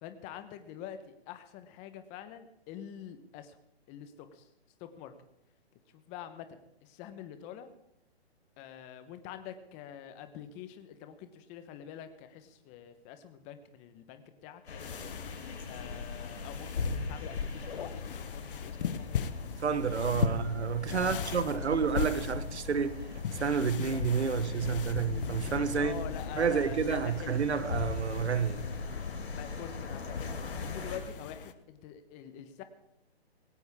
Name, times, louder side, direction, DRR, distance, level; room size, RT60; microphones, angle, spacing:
voice 1, 0.0-3.6 3.9-4.5 4.8-5.1 5.9-7.7 8.6-14.9 15.7-19.3 20.2-20.4 20.9-21.8 25.7-27.4 29.3-32.6, left 9 dB, 20° left, 1.1 m, -46 dB
sound 1, 14.7-31.0, left 4 dB, 75° left, 4.2 m, -39 dB
sound 2, 14.8-31.5, left 8 dB, 55° left, 1.1 m, -39 dB
voice 2, 19.6-23.0 23.3-25.9 26.4-28.6, right 6 dB, 85° right, 1.3 m, -30 dB
18.5 x 17.0 x 3.6 m
hypercardioid pair, 150°, 32 cm